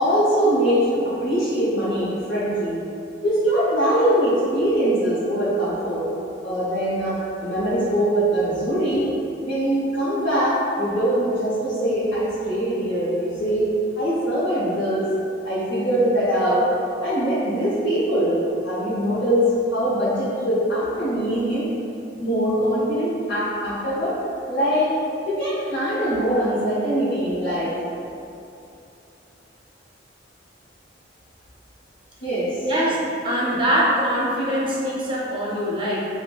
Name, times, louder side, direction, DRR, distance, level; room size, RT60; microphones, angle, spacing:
voice 1, 0.0-2.8 3.2-6.1 6.4-9.1 9.4-13.7 14.0-15.1 15.4-16.7 17.0-21.7 22.2-24.2 24.5-24.9 25.3-27.7 32.2-32.7, right 1 dB, 90° left, -11 dB, 0.7 m, -22 dB
voice 2, 32.6-36.0, equal, 25° right, -6 dB, 0.5 m, -23 dB
4.5 x 2.0 x 2.2 m, 2.8 s
head